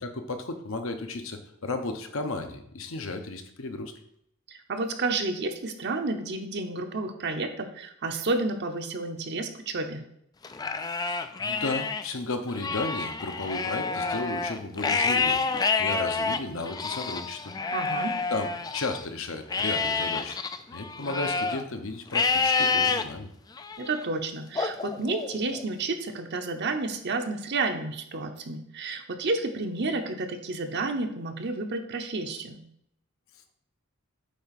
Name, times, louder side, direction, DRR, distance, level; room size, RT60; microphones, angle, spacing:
voice 1, 0.0-3.9 11.1-17.5 18.3-20.4 20.7-23.3, left 3 dB, 65° left, 6 dB, 0.9 m, -34 dB
voice 2, 4.5-10.0 17.7-18.2 23.8-32.6, right 3 dB, 50° right, 6 dB, 0.9 m, -31 dB
Livestock farm animals working animals, 10.4-12.0 12.5-19.0 19.5-21.6 22.1-23.0 23.6-24.0 24.6-25.6, left 4 dB, 20° left, 0.3 m, -28 dB
8.4 x 3.5 x 5.8 m, 0.73 s
head